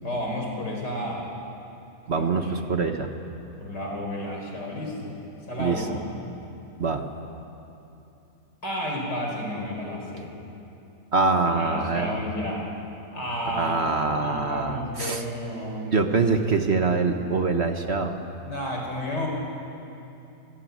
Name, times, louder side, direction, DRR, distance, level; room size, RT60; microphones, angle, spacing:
voice 1, 0.0-1.2 2.1-2.6 3.6-5.2 5.5-6.2 8.6-10.3 11.6-12.7 13.1-16.0 16.6-16.7 18.4-19.3, equal, 85° left, 0 dB, 5.3 m, -32 dB
voice 2, 2.1-3.1 5.6-5.8 6.8-7.1 11.1-12.2 13.5-15.3 15.9-18.1, right 4 dB, 40° right, 6 dB, 1.4 m, -24 dB
25.0 x 18.0 x 9.6 m, 2.8 s
omnidirectional pair, 1.8 m